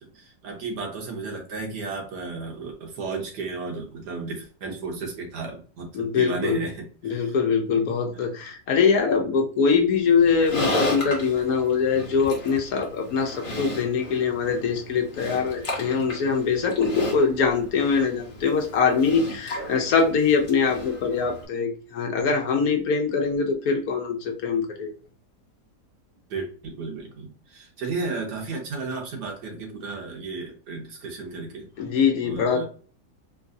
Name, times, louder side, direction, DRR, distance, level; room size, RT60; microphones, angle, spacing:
voice 1, 0.0-7.3 26.3-31.7 32.2-32.6, right 3 dB, 80° right, 1 dB, 1.6 m, -33 dB
voice 2, 5.9-6.7 7.0-24.9 31.8-32.6, left 5 dB, 65° left, 4 dB, 1.1 m, -23 dB
Livestock farm animals working animals, 10.2-21.4, left 1 dB, 35° left, 1.1 m, -34 dB
3.8 x 2.5 x 2.5 m, 0.39 s
omnidirectional pair, 1.8 m